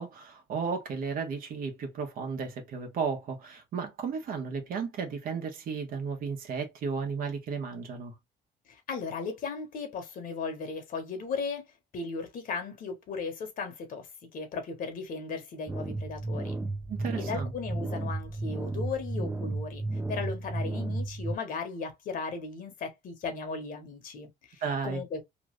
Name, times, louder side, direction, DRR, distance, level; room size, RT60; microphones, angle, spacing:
voice 1, 0.0-8.1 16.9-17.5 24.6-25.0, right 5 dB, 60° right, 1.2 m, -34 dB
voice 2, 8.7-16.5 17.2-19.8 20.1-25.2, left 4 dB, 55° left, 1.2 m, -36 dB
sound 1, 15.7-21.4, right 2 dB, 15° right, 0.6 m, -33 dB
3.1 x 2.5 x 3.0 m
cardioid pair, 110°, 17 cm